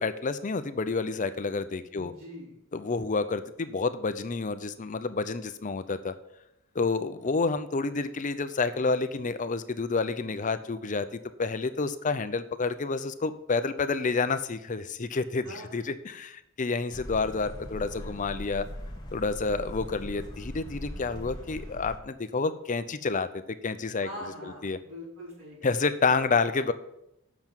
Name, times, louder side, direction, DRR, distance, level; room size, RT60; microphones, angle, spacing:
voice 1, 0.0-2.1 2.7-6.1 6.7-11.1 11.4-18.7 19.1-24.1 24.6-24.8 25.6-26.7, left 4 dB, 35° left, 11 dB, 0.6 m, -29 dB
voice 2, 1.9-2.6 15.4-15.8 24.0-25.7, equal, 70° right, -5 dB, 4.2 m, -43 dB
sound 1, 16.9-22.0, left 1 dB, 20° left, 1.2 m, -40 dB
7.7 x 6.0 x 7.0 m, 0.82 s
head